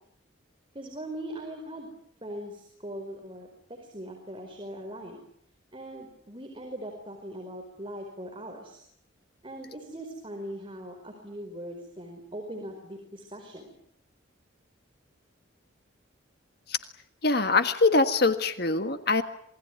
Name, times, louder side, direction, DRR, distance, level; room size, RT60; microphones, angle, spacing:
voice 1, 0.7-1.9 2.2-5.2 5.7-8.8 9.4-13.7, right 1 dB, 25° right, 3 dB, 4.7 m, -40 dB
voice 2, 17.2-19.2, left 3 dB, 50° left, 9 dB, 1.6 m, -23 dB
27.5 x 21.0 x 9.4 m, 0.68 s
head